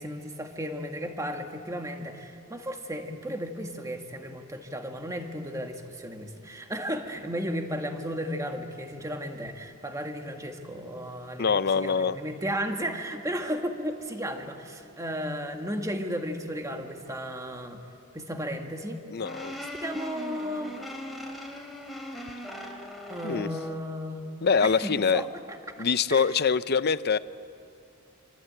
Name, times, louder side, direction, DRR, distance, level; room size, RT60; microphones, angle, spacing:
voice 1, 0.0-17.8 18.1-19.0 19.8-20.8 23.1-24.2 24.6-25.3 26.1-26.3, equal, 15° right, 4 dB, 1.9 m, -34 dB
voice 2, 11.4-12.2 19.1-19.5 23.2-23.5 24.4-25.2 25.8-27.2, left 5 dB, 50° left, 14 dB, 0.6 m, -24 dB
sound 1, 19.2-23.8, equal, ahead, 3.2 m, -40 dB
27.0 x 24.5 x 8.9 m, 2.5 s
head